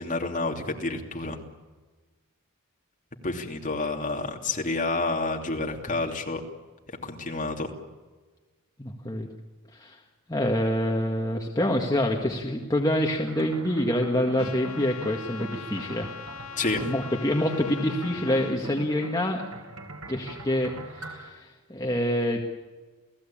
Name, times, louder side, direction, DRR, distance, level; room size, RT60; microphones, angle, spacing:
voice 1, 0.0-1.4 3.2-6.4 7.0-7.7 16.6-16.9, left 3 dB, 35° left, 2 dB, 2.9 m, -29 dB
voice 2, 8.8-9.3 9.7-10.0 10.3-16.1 16.8-19.4 20.1-22.4, left 1 dB, 15° left, 0 dB, 1.8 m, -26 dB
sound 1, 13.2-21.3, right 1 dB, 75° right, 3.8 m, -42 dB
Trumpet, 14.4-18.6, left 7 dB, 75° left, 1.4 m, -41 dB
30.0 x 17.0 x 8.7 m, 1.3 s
head